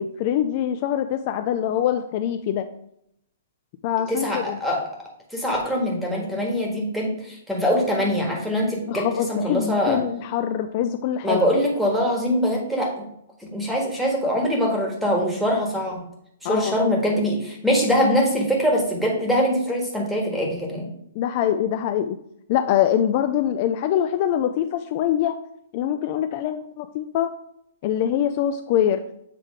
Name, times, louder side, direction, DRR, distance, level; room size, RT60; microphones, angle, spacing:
voice 1, 0.0-2.7 3.8-4.6 8.9-11.4 16.4-16.8 21.1-22.2 22.5-25.4 25.7-27.3 27.8-29.0, left 10 dB, 40° left, 7 dB, 0.4 m, -24 dB
voice 2, 4.1-4.9 5.3-10.0 11.2-13.0 13.4-16.0 16.4-20.9, equal, ahead, -2 dB, 1.6 m, -23 dB
7.6 x 3.1 x 4.9 m, 0.73 s
hypercardioid pair, 150°, 0 cm